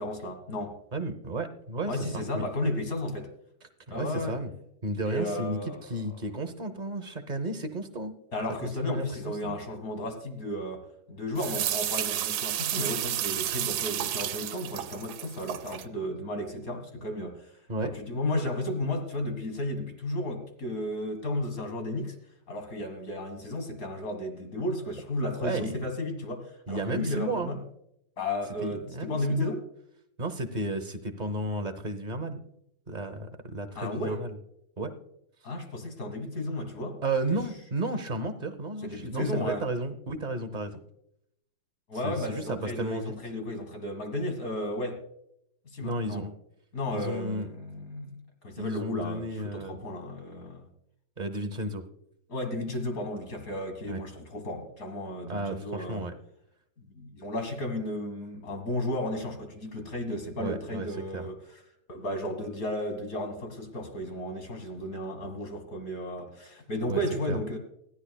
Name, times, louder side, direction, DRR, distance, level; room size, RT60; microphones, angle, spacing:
voice 1, 0.0-0.7 1.9-3.3 3.9-4.4 5.1-6.0 8.3-17.5 17.8-22.2 22.5-27.6 28.2-29.6 33.8-34.2 35.4-37.0 38.8-39.6 41.9-45.0 45.7-46.2 46.7-50.7 52.3-56.0 56.8-61.4 61.9-67.6, left 1 dB, 45° left, 6 dB, 2.1 m, -33 dB
voice 2, 0.9-2.4 3.9-4.5 4.8-8.2 8.6-9.6 17.7-17.9 25.4-25.8 26.7-27.5 28.6-29.5 30.2-32.4 32.9-34.4 34.8-34.9 37.0-40.8 42.0-43.1 45.8-46.3 46.9-47.5 48.6-49.8 51.2-51.8 53.8-54.0 55.3-56.1 60.4-60.9 61.1-61.3 66.8-67.0 67.3-67.4, right 2 dB, 40° right, 8 dB, 0.6 m, -33 dB
sound 1, 11.4-15.9, right 12 dB, 90° right, 1.5 m, -31 dB
20.0 x 14.5 x 2.3 m, 0.77 s
omnidirectional pair, 2.1 m